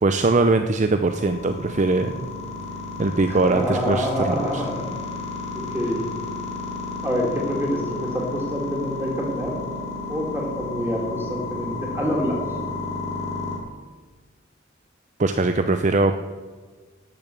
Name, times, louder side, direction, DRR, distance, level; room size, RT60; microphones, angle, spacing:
voice 1, 0.0-2.1 3.0-4.6 15.2-16.2, right 3 dB, 40° right, 8 dB, 0.5 m, -21 dB
sound 1, 1.1-13.6, left 3 dB, 35° left, 3.0 m, -32 dB
voice 2, 3.3-4.9 5.5-6.0 7.0-9.6 10.1-12.4, equal, 10° right, -1 dB, 3.0 m, -26 dB
12.0 x 7.2 x 8.3 m, 1.4 s
head